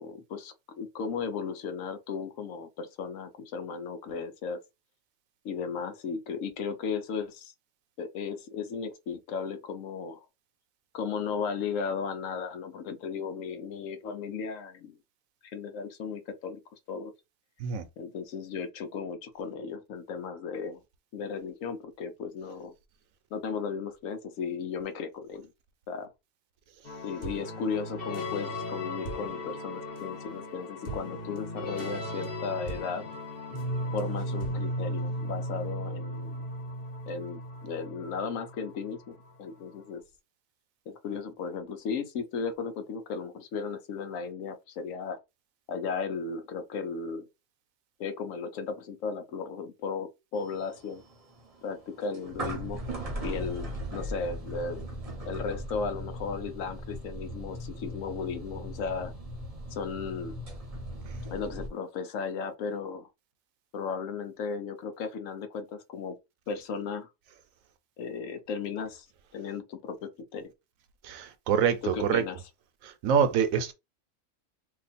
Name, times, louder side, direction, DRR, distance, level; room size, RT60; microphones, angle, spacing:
voice 1, 0.0-4.6 5.4-7.5 8.0-10.3 10.9-15.0 15.4-16.6 16.9-17.1 18.0-20.8 21.1-22.7 23.3-25.5 25.9-26.1 27.0-33.0 33.9-36.4 37.1-40.0 40.9-45.2 45.7-47.3 48.0-51.0 51.6-52.8 53.2-54.9 55.3-59.1 59.7-60.3 61.3-63.1 63.7-66.2 66.5-67.1 68.0-69.1 69.3-70.5 71.8-72.4, left 5 dB, 75° left, 1.0 m, -35 dB
sound 1, 26.8-39.4, left 1 dB, 45° left, 1.3 m, -36 dB
sound 2, 50.3-61.7, right 1 dB, 30° right, 0.8 m, -39 dB
voice 2, 71.0-72.2 72.8-73.7, right 7 dB, 80° right, 1.1 m, -26 dB
2.9 x 2.3 x 4.0 m
omnidirectional pair, 1.4 m